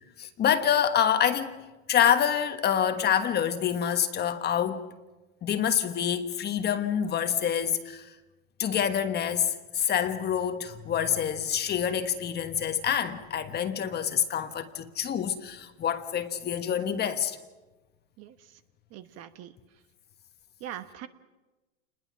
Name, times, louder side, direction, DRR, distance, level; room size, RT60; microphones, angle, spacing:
voice 1, 0.2-4.9 5.4-8.1 8.6-17.4, left 9 dB, 25° left, 1.4 m, -27 dB
voice 2, 18.9-19.5 20.6-21.1, right 11 dB, 40° right, 1.2 m, -41 dB
28.5 x 21.0 x 6.0 m
supercardioid pair, 130°, 39 cm